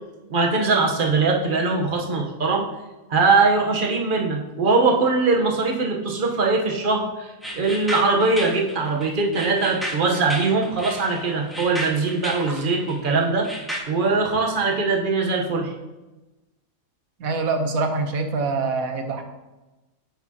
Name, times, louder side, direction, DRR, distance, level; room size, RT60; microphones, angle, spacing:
voice 1, 0.3-2.7 3.1-13.5 13.9-15.7, right 3 dB, 40° right, 1 dB, 1.1 m, -21 dB
sound 1, 7.4-13.8, equal, ahead, 1.5 m, -33 dB
voice 2, 17.2-19.2, right 3 dB, 75° right, 6 dB, 1.3 m, -24 dB
9.6 x 7.0 x 2.9 m, 1.1 s
omnidirectional pair, 1.5 m